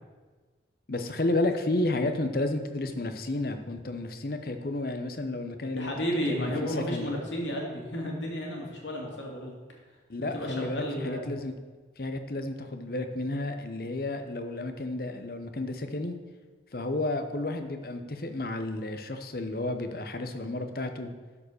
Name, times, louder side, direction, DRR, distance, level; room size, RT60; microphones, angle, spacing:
voice 1, 0.9-5.9 6.3-7.1 10.1-11.5 12.0-16.1 16.7-21.1, left 2 dB, 55° left, 7 dB, 0.9 m, -31 dB
voice 2, 5.7-9.6 10.2-11.3, equal, 85° left, -1 dB, 2.5 m, -32 dB
12.0 x 4.9 x 6.6 m, 1.4 s
head